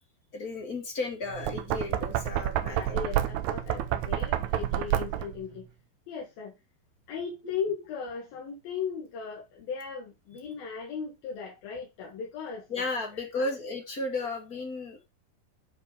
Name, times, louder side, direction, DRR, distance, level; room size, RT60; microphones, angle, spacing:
voice 1, 0.3-3.0 12.7-15.0, left 3 dB, 35° left, 1.8 m, -34 dB
Knock, 1.3-5.4, right 12 dB, 75° right, 1.8 m, -29 dB
voice 2, 2.7-5.7 6.1-6.5 7.1-12.9 13.1-13.5, left 6 dB, 90° left, 3.6 m, -37 dB
9.1 x 4.7 x 5.3 m
omnidirectional pair, 4.1 m